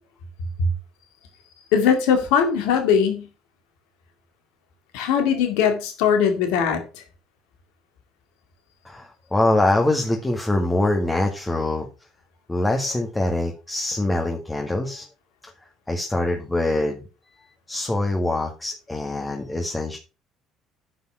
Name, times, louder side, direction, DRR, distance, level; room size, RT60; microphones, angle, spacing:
voice 1, 1.7-3.3 4.9-7.0, left 7 dB, 75° left, 6 dB, 2.2 m, -20 dB
voice 2, 8.8-11.9 12.5-15.1 15.9-17.0 17.7-20.0, left 2 dB, 15° left, 2 dB, 2.0 m, -24 dB
10.5 x 5.6 x 5.8 m, 0.31 s
hypercardioid pair, 65°, 0 cm